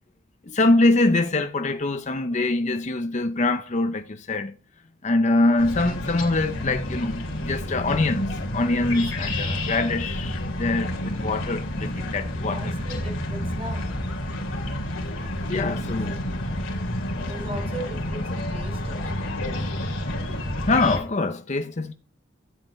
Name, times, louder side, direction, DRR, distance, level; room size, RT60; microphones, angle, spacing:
voice 1, 0.5-4.5 5.0-12.7 15.5-16.1 20.7-21.9, left 2 dB, 35° left, 0.7 m, -24 dB
sound 1, 5.6-21.0, left 1 dB, 90° left, 2.7 m, -29 dB
voice 2, 11.9-13.8 16.1-16.4 17.2-19.3, right 1 dB, 30° right, 5.4 m, -38 dB
12.0 x 7.8 x 3.2 m
head